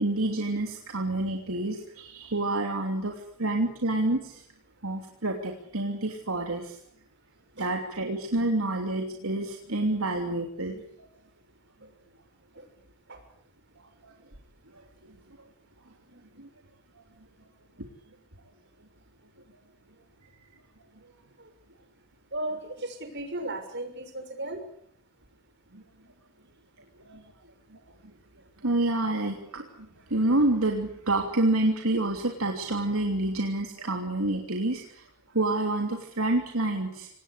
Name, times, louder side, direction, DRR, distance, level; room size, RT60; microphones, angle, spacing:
voice 1, 0.0-4.4 4.8-6.8 7.6-10.8 14.0-14.1 14.7-14.8 16.4-16.5 25.7-25.8 27.0-27.2 28.6-29.7 30.1-35.0 35.3-37.1, right 2 dB, 75° right, 2 dB, 3.1 m, -28 dB
voice 2, 22.3-24.6, right 1 dB, 55° right, 6 dB, 6.2 m, -35 dB
26.5 x 19.0 x 8.3 m, 0.68 s
head